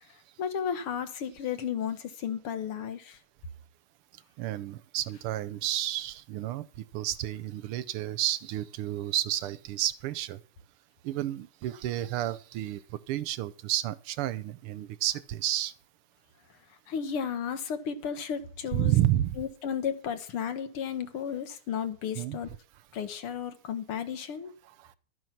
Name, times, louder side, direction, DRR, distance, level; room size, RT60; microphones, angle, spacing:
voice 1, 0.4-3.2 16.9-19.0 19.4-22.5 22.9-24.5, left 8 dB, 85° left, 2.2 m, -33 dB
voice 2, 4.4-6.6 6.9-10.4 11.0-12.8 13.1-15.7 18.7-19.4 22.2-22.4, right 13 dB, 85° right, 1.7 m, -30 dB
12.0 x 9.4 x 5.8 m
omnidirectional pair, 2.4 m